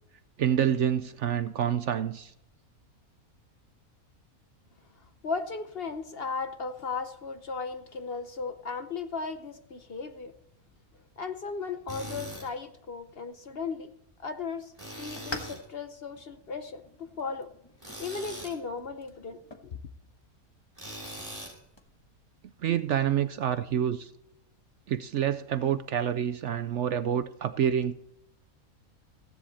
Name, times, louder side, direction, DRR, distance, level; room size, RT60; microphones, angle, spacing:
voice 1, 0.4-2.3 22.6-24.1 24.9-27.9, right 9 dB, 65° right, 11 dB, 0.8 m, -27 dB
voice 2, 5.2-10.3 11.2-13.9 14.2-14.7 15.0-17.5 18.0-19.8, left 4 dB, 50° left, 8 dB, 0.9 m, -36 dB
Tools, 11.9-12.5 14.8-15.6 17.8-18.6 20.8-21.6, equal, 20° right, 6.2 m, -41 dB
sound 1, 13.0-21.9, left 1 dB, 20° left, 1.3 m, -48 dB
15.5 x 10.0 x 4.2 m, 0.79 s
omnidirectional pair, 1.5 m